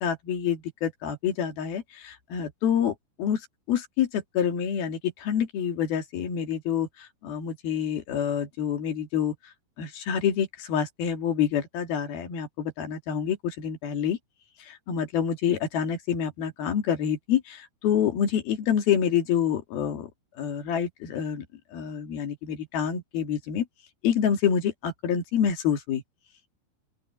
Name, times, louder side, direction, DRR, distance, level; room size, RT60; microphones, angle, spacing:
voice 1, 0.0-3.4 3.7-9.3 9.8-14.2 14.7-20.1 20.4-21.4 21.7-23.7 24.0-26.0, left 8 dB, 65° left, 4.0 m, -27 dB
open air
omnidirectional pair, 4.7 m